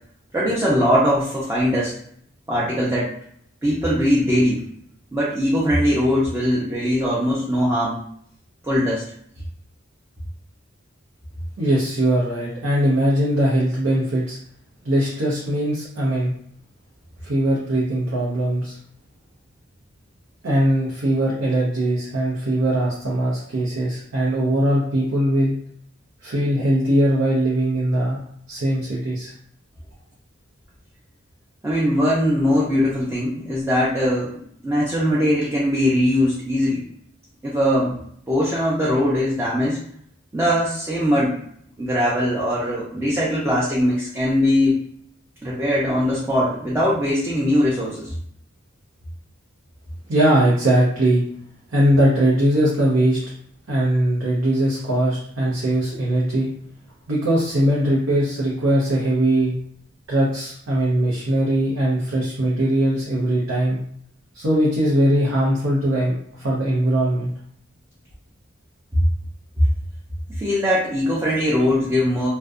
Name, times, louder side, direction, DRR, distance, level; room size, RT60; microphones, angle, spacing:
voice 1, 0.3-1.9 2.5-3.1 3.6-4.6 5.1-8.0 8.6-9.0 31.6-36.8 37.4-38.0 38.3-39.8 40.3-41.4 41.8-44.8 45.4-48.1 70.4-72.3, equal, 10° right, -7 dB, 0.4 m, -21 dB
voice 2, 11.6-14.4 14.8-16.3 17.2-18.8 20.4-25.5 26.2-29.3 50.1-51.2 51.7-53.2 53.7-56.5 57.1-59.5 60.1-63.8 64.3-67.3, right 1 dB, 85° right, -6 dB, 0.6 m, -20 dB
2.6 x 2.1 x 2.4 m, 0.65 s
head